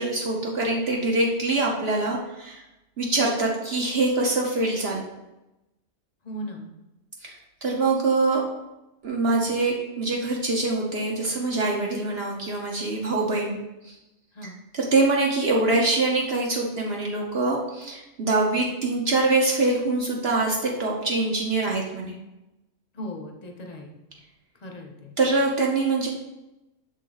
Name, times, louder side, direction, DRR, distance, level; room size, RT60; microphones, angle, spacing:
voice 1, 0.0-2.6 3.0-5.0 7.2-8.4 9.0-13.6 13.8-13.9 14.7-22.2 25.2-26.1, right 3 dB, 50° right, -1 dB, 0.9 m, -24 dB
voice 2, 6.2-6.7 14.3-14.6 22.9-23.9 24.6-25.1, equal, 35° left, 1 dB, 0.7 m, -37 dB
6.5 x 3.7 x 3.9 m, 0.97 s
omnidirectional pair, 1.4 m